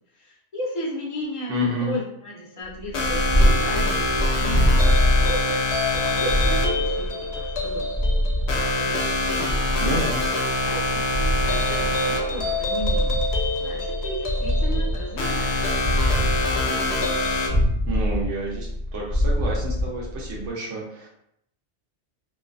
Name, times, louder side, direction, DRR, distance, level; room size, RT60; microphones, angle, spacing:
voice 1, 0.1-1.5 1.8-5.6 5.9-8.0 8.5-10.3 10.6-13.2 13.5-15.6, equal, 35° left, -4 dB, 0.6 m, -35 dB
voice 2, 1.5-2.0 9.8-10.2 17.9-18.7 18.9-21.1, equal, 85° right, -3 dB, 1.0 m, -29 dB
Purr, 2.8-20.5, equal, 30° right, 1.2 m, -24 dB
sound 1, 2.9-17.5, left 2 dB, 70° left, 0.8 m, -26 dB
2.5 x 2.4 x 2.2 m, 0.75 s
omnidirectional pair, 1.2 m